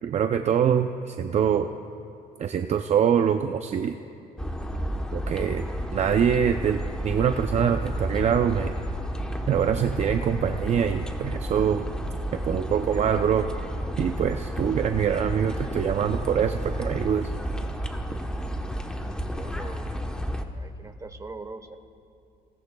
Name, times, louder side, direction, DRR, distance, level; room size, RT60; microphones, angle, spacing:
voice 1, 0.0-1.7 2.4-4.0 5.1-8.7 9.5-11.9 12.3-13.5 14.0-17.3, right 8 dB, 40° right, 7 dB, 0.5 m, -24 dB
sound 1, 4.4-20.4, equal, 5° left, 1.0 m, -31 dB
voice 2, 19.1-19.9 20.5-21.8, right 3 dB, 20° right, 8 dB, 1.1 m, -41 dB
27.5 x 17.5 x 2.3 m, 2.7 s
cardioid pair, 110°, 17 cm